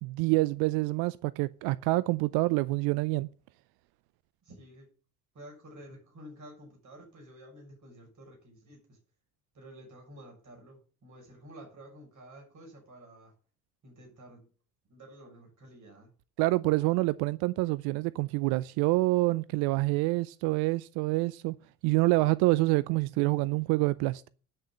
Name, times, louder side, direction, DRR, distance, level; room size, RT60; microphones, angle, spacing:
voice 1, 0.0-3.3 16.4-21.6 21.8-24.3, right 21 dB, 60° right, 0.6 m, -27 dB
voice 2, 4.4-4.9 5.3-9.0 9.5-13.3 13.8-14.5 14.9-16.1, right 1 dB, 45° right, 6.9 m, -51 dB
10.0 x 6.6 x 8.7 m
hypercardioid pair, 55°, 42 cm